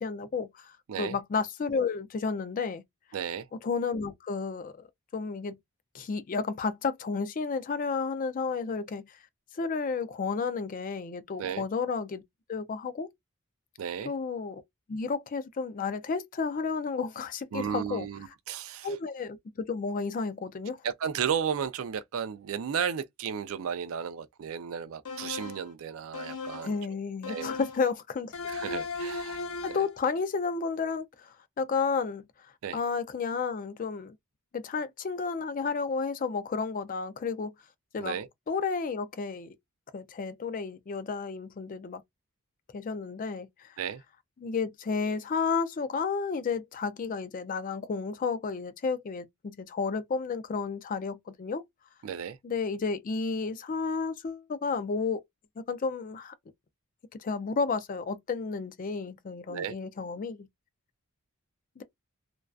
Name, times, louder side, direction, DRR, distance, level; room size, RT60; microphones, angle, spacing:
voice 1, 0.0-2.8 3.6-4.8 5.1-5.6 5.9-9.1 9.5-12.2 12.5-13.1 14.0-14.6 14.9-18.1 18.8-20.8 26.6-28.3 29.6-32.2 32.7-34.1 34.5-37.5 37.9-38.2 38.5-39.5 39.9-42.0 42.7-43.7 44.4-51.6 52.4-55.2 55.6-56.3 57.2-60.5 61.8-61.9, left 5 dB, 40° left, 0.3 m, -32 dB
voice 2, 3.1-3.5 11.4-11.6 13.8-14.1 17.5-18.9 20.8-26.8 27.3-27.5 28.5-29.4 32.6-32.8 38.0-38.3 43.8-44.0 52.0-52.4 59.5-59.7, right 7 dB, 70° right, 0.4 m, -34 dB
sound 1, 25.0-25.7 26.1-26.8 27.2-27.9 28.3-30.0, left 3 dB, 85° left, 0.6 m, -37 dB
2.4 x 2.2 x 2.3 m
head